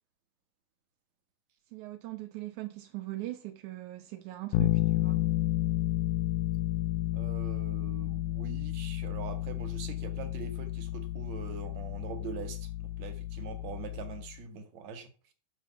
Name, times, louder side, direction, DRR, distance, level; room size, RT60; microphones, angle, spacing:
voice 1, 1.7-5.2, right 17 dB, 75° right, 1.9 m, -40 dB
Bass guitar, 4.5-14.4, left 15 dB, 80° left, 2.3 m, -32 dB
voice 2, 7.1-15.3, right 6 dB, 55° right, 2.5 m, -43 dB
9.3 x 6.1 x 6.6 m
omnidirectional pair, 4.3 m